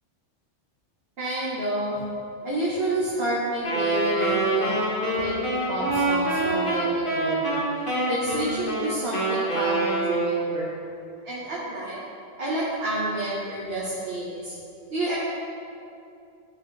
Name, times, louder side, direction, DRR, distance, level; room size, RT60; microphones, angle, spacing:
voice 1, 1.2-2.0 2.4-4.8 5.2-5.3 5.7-7.6 8.1-10.7 11.2-12.0 12.4-14.5 14.9-15.2, right 1 dB, 55° right, -7 dB, 1.5 m, -29 dB
Wind instrument woodwind instrument, 3.6-10.6, right 2 dB, 45° left, 1.8 m, -25 dB
12.0 x 5.7 x 3.3 m, 2.5 s
omnidirectional pair, 1.3 m